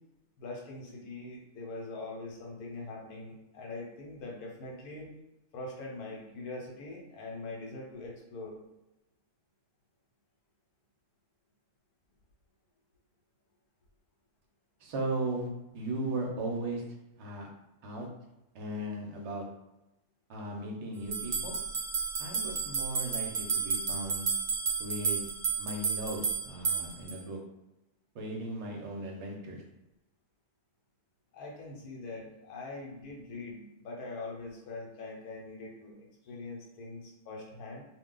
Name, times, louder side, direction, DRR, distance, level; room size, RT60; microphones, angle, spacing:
voice 1, 0.4-5.1 5.5-8.6 31.3-37.9, left 2 dB, 80° left, -2 dB, 1.2 m, -43 dB
voice 2, 14.8-15.5 15.7-16.8 17.2-17.5 17.8-18.1 18.5-19.5 20.3-21.5 22.2-24.3 24.8-25.3 25.6-27.4 28.1-29.6, right 1 dB, 55° right, 0 dB, 0.8 m, -37 dB
sound 1, 21.1-27.2, right 5 dB, 80° right, 0.4 m, -32 dB
2.5 x 2.2 x 3.7 m, 0.93 s
omnidirectional pair, 1.6 m